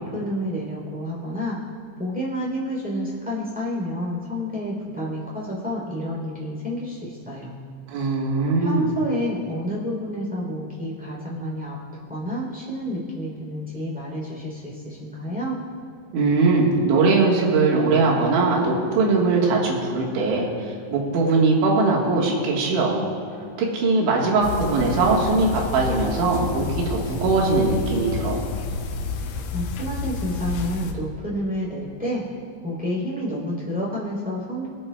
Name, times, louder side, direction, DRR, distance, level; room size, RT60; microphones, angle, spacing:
voice 1, 0.0-1.6 2.0-7.5 8.6-11.8 12.1-15.6 29.5-32.2 32.6-34.7, equal, 5° right, -5 dB, 1.8 m, -29 dB
voice 2, 7.9-9.0 16.1-23.1 23.6-28.5, right 3 dB, 75° right, -3 dB, 3.7 m, -21 dB
sound 1, 24.4-30.9, left 4 dB, 90° left, 3.2 m, -30 dB
26.0 x 8.8 x 2.3 m, 2.5 s
omnidirectional pair, 5.4 m